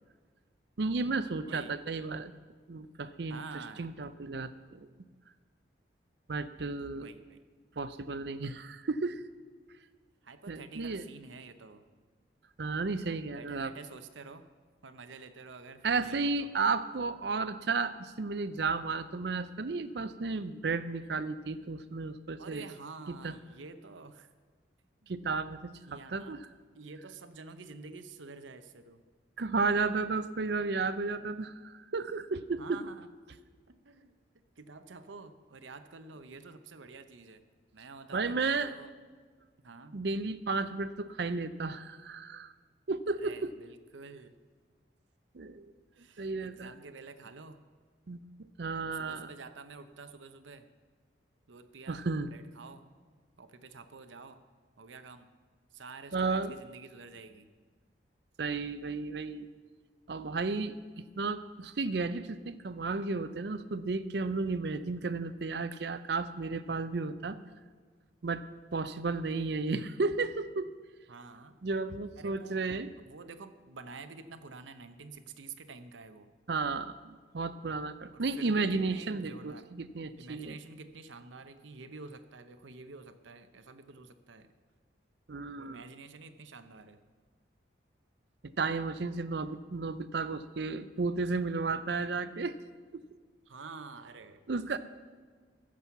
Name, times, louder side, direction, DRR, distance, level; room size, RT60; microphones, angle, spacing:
voice 1, 0.8-2.3 2.7-3.4 3.8-4.9 6.3-7.1 7.8-9.2 10.5-11.0 12.6-13.7 15.8-22.6 23.1-23.3 25.1-26.4 29.4-32.8 38.1-38.7 39.9-42.5 42.9-43.5 45.3-45.7 46.2-46.7 48.1-49.3 51.9-52.3 56.1-56.5 58.4-59.5 60.1-67.4 68.2-68.4 68.7-70.7 71.6-72.9 76.5-80.5 85.3-85.8 88.4-92.6 92.9-93.0 94.5-94.8, right 4 dB, 60° right, 13 dB, 0.6 m, -33 dB
voice 2, 3.3-3.9 6.9-7.4 10.2-11.8 13.3-14.5 14.8-16.5 22.4-24.3 25.0-25.1 25.9-26.4 26.7-29.0 32.6-33.1 33.8-34.2 34.6-37.4 37.7-38.9 39.6-40.0 43.2-44.4 45.9-47.6 48.9-50.7 51.5-52.0 52.3-52.8 53.4-54.4 54.8-55.3 55.7-57.5 71.1-71.6 72.2-76.3 78.1-79.7 80.2-84.5 85.5-87.0 93.5-94.8, right 4 dB, 90° right, 10 dB, 0.8 m, -49 dB
15.0 x 6.3 x 7.1 m, 1.5 s
head